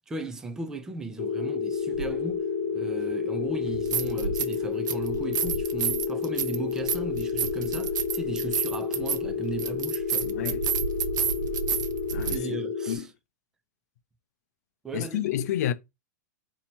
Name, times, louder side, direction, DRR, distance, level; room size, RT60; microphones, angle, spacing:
voice 1, 0.0-2.4 2.7-10.3 12.3-13.1 14.8-15.3, right 2 dB, 5° right, 0.3 m, -37 dB
sound 1, 1.2-13.0, left 6 dB, 30° left, 1.1 m, -30 dB
sound 2, 2.0-2.1 3.6-4.6 4.9-12.4, right 7 dB, 80° right, 0.7 m, -30 dB
voice 2, 10.2-10.6 12.1-12.6 12.9-13.1 14.9-15.7, left 11 dB, 60° left, 0.5 m, -30 dB
4.2 x 2.8 x 4.4 m
supercardioid pair, 165°, 10 cm